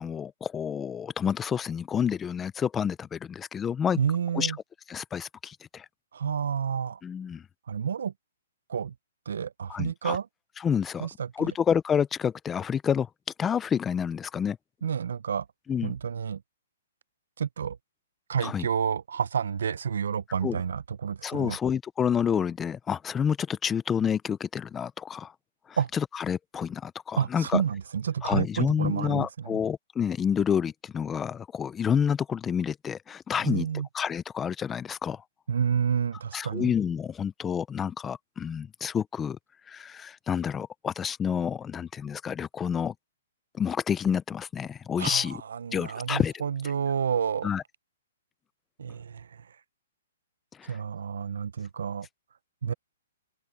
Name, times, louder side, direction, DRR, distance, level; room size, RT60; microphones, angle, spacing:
voice 1, 0.0-4.0 4.3-4.5 4.9-5.9 7.0-7.4 9.7-10.2 10.6-11.1 11.4-13.1 13.4-14.6 15.7-15.9 18.4-18.7 20.4-20.6 21.2-25.3 25.7-27.6 28.2-33.7 33.9-35.2 36.3-39.4 39.7-42.9 43.5-45.4 45.7-46.3 47.4-47.6 50.6-50.8, left 7 dB, 10° left, 0.4 m, -29 dB
voice 2, 4.0-4.6 6.1-7.0 7.7-8.1 8.7-8.9 9.3-10.3 11.0-11.5 14.8-15.5 15.8-16.4 17.4-17.8 18.3-21.6 25.8-25.9 27.2-29.6 33.4-33.9 35.5-36.7 45.0-47.5 48.8-49.4 50.7-52.1 52.6-52.7, right 7 dB, 80° right, 0.6 m, -29 dB
hypercardioid pair, 165°, 0 cm